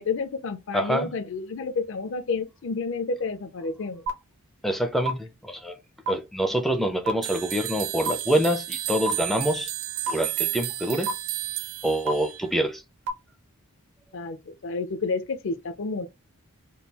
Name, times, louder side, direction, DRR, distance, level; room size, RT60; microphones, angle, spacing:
voice 1, 0.0-4.0 14.1-16.1, left 4 dB, 55° left, 0.5 m, -30 dB
voice 2, 0.7-1.1 4.6-5.8 6.1-9.7 10.1-11.1 11.8-12.8, right 1 dB, ahead, 0.4 m, -26 dB
sound 1, 4.1-4.2 5.0-5.1 6.0-6.1 7.1-7.2 8.1-8.2 9.1-9.2 10.1-10.2 11.1-11.2 12.1-12.2 13.1-13.2, right 3 dB, 45° right, 0.8 m, -25 dB
sound 2, 7.2-12.4, right 15 dB, 65° right, 0.4 m, -32 dB
3.6 x 2.3 x 2.8 m
head